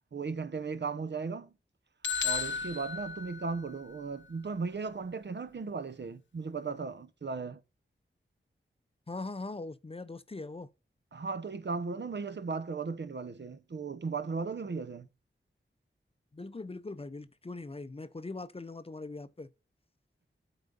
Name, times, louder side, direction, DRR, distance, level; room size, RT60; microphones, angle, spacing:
voice 1, 0.1-1.5 2.2-7.6 11.1-15.1, right 4 dB, 60° right, 0.7 m, -36 dB
sound 1, 2.0-4.0, left 6 dB, 65° left, 0.7 m, -34 dB
voice 2, 9.1-10.7 16.3-19.5, left 3 dB, 30° left, 0.6 m, -41 dB
8.2 x 3.9 x 5.2 m
wide cardioid pair, 55°, 20 cm